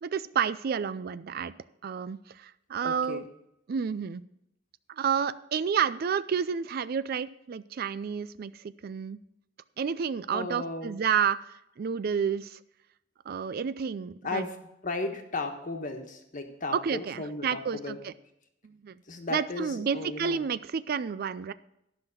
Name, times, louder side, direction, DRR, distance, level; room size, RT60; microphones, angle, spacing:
voice 1, 0.0-1.5 1.8-3.2 3.7-4.2 4.9-9.2 9.8-12.6 13.3-14.4 16.7-18.1 18.6-19.0 19.3-21.5, right 7 dB, 55° right, 15 dB, 0.4 m, -30 dB
voice 2, 2.8-3.3 10.3-10.9 14.2-14.6 14.8-18.0 19.1-20.4, left 3 dB, 45° left, 5 dB, 1.3 m, -35 dB
12.0 x 5.8 x 6.3 m, 0.81 s
head